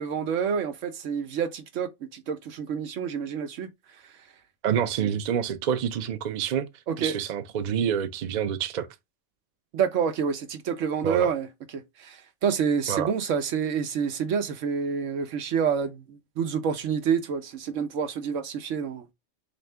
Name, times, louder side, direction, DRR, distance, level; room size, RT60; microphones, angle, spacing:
voice 1, 0.0-3.7 5.0-5.1 6.9-7.1 9.7-19.1, right 7 dB, 90° right, 1.1 m, -28 dB
voice 2, 4.6-6.7 7.0-8.9 11.0-11.3 12.9-13.1, right 8 dB, 50° right, 0.5 m, -27 dB
4.2 x 2.7 x 3.2 m
omnidirectional pair, 1.3 m